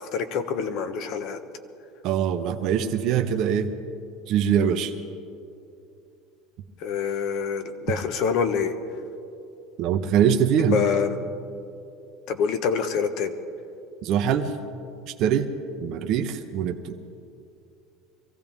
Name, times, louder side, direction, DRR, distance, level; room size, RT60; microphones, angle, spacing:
voice 1, 0.0-1.4 6.8-8.7 10.6-11.2 12.3-13.3, left 6 dB, 60° left, 8 dB, 1.3 m, -26 dB
voice 2, 2.0-3.7 4.3-4.9 9.8-10.8 14.0-14.5 15.2-15.5 15.8-17.0, right 8 dB, 55° right, 5 dB, 0.9 m, -23 dB
23.5 x 15.5 x 3.6 m, 2.5 s
supercardioid pair, 125°, 0 cm